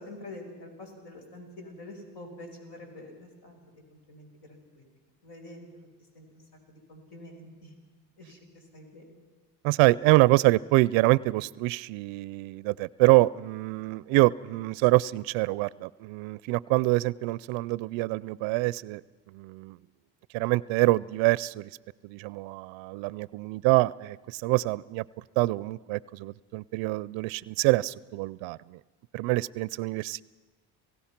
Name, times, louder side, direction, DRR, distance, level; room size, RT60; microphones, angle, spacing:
voice 1, 0.0-3.6 3.9-4.8 5.2-5.9 6.1-6.4 6.7-7.7 8.2-9.2, left 1 dB, 60° left, 3 dB, 5.7 m, -46 dB
voice 2, 9.6-19.0 19.3-19.8 20.3-21.7 22.0-25.0 25.4-28.8 29.1-30.2, right 21 dB, 85° right, 22 dB, 0.5 m, -25 dB
27.5 x 16.5 x 5.9 m, 1.3 s
cardioid pair, 110°, 45 cm